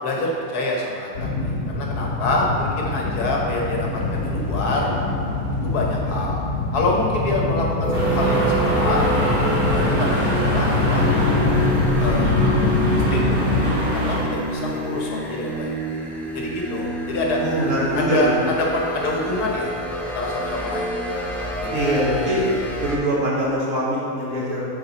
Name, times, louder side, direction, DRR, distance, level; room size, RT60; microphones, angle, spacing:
voice 1, 0.0-4.9 5.6-6.4 6.7-9.1 9.7-11.1 12.0-12.5 13.1-13.5 13.9-15.7 16.3-17.4 17.9-19.7 20.1-20.9 21.6-22.0, left 2 dB, 85° left, -2 dB, 1.6 m, -26 dB
sound 1, 1.1-13.7, left 2 dB, 60° left, 1.7 m, -24 dB
sound 2, 7.8-23.0, equal, ahead, 0.4 m, -27 dB
sound 3, 7.9-14.2, equal, 40° right, 2.1 m, -25 dB
voice 2, 17.4-18.3 21.7-22.4 22.8-24.6, right 1 dB, 55° right, -6 dB, 1.8 m, -23 dB
8.1 x 4.7 x 4.1 m, 2.6 s
omnidirectional pair, 1.6 m